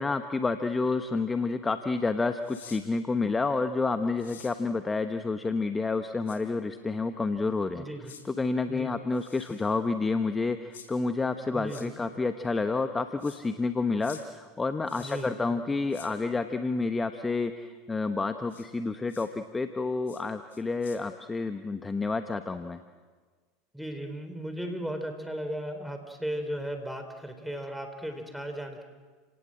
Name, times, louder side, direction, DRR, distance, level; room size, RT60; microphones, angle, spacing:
voice 1, 0.0-7.8 8.2-22.8, left 3 dB, 15° left, 8 dB, 1.1 m, -29 dB
sound 1, 2.4-2.8 4.2-4.5 6.3-6.4 8.0-8.2 9.1-9.8 10.7-10.9 11.7-11.9 13.2-13.4 14.0-14.2 14.9-15.3 15.9-16.1 18.5-18.7 19.1-19.3 20.1-20.2 20.5-21.0, left 7 dB, 85° left, 4.5 m, -49 dB
voice 2, 7.7-8.1 8.7-9.0 11.5-11.9 15.0-15.3 23.7-28.8, right 1 dB, ahead, 5 dB, 3.8 m, -36 dB
30.0 x 18.5 x 7.7 m, 1.5 s
hypercardioid pair, 95°, 0 cm